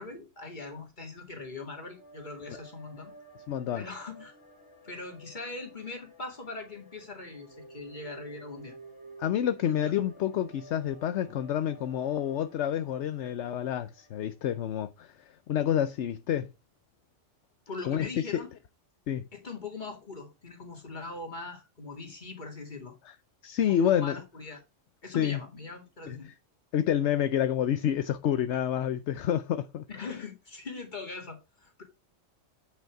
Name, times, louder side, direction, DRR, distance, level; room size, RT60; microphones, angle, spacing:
voice 1, 0.0-3.1 3.7-4.3 4.8-8.8 9.6-9.9 17.7-18.5 19.3-22.9 23.5-24.6 25.0-26.3 29.9-31.8, left 3 dB, 40° left, 2.5 m, -41 dB
sound 1, 1.4-14.7, right 2 dB, 25° left, 2.6 m, -52 dB
voice 2, 3.5-3.8 9.2-16.5 17.8-18.4 19.1-19.3 23.1-23.2 23.4-24.2 25.1-25.4 26.1-26.2 26.7-30.1, left 10 dB, 70° left, 0.9 m, -28 dB
8.9 x 5.6 x 4.6 m
omnidirectional pair, 1.3 m